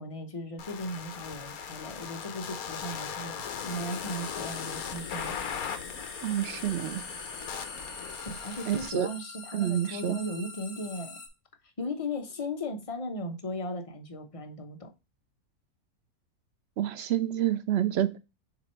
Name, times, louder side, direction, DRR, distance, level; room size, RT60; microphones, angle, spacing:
voice 1, 0.0-5.3 8.2-11.2 11.6-14.9, left 1 dB, 25° left, 0.9 m, -37 dB
sound 1, 0.6-8.9, left 7 dB, 70° left, 1.2 m, -39 dB
sound 2, 2.9-11.3, left 3 dB, 45° left, 1.5 m, -44 dB
voice 2, 6.2-7.0 8.7-9.1 9.5-10.2 16.8-18.2, right 11 dB, 80° right, 0.5 m, -28 dB
7.7 x 3.0 x 4.3 m
omnidirectional pair, 1.6 m